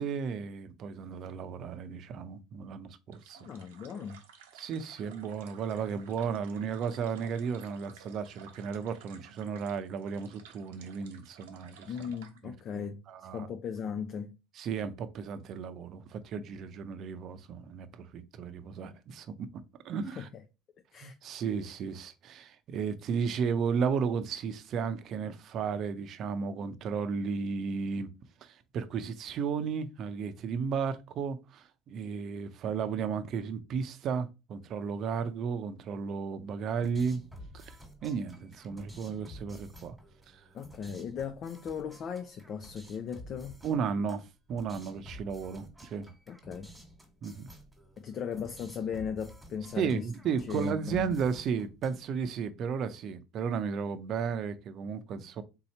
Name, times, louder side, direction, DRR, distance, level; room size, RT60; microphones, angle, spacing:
voice 1, 0.0-3.4 4.6-11.9 12.4-13.5 14.6-19.5 19.8-20.3 21.0-28.1 28.4-37.2 37.5-37.7 38.0-40.0 40.3-40.4 43.6-46.1 47.2-47.5 49.7-55.4, right 6 dB, 50° right, 0.6 m, -34 dB
sound 1, 3.1-12.4, right 7 dB, 90° right, 0.7 m, -55 dB
voice 2, 3.4-4.2 11.9-13.0 13.3-14.4 20.2-20.3 20.9-21.1 39.1-39.2 40.5-43.6 46.3-46.7 48.0-50.1 50.5-51.1, left 6 dB, 45° left, 0.5 m, -37 dB
sound 2, 36.8-52.3, equal, 5° right, 1.5 m, -52 dB
3.8 x 2.8 x 4.3 m
supercardioid pair, 100°, 0 cm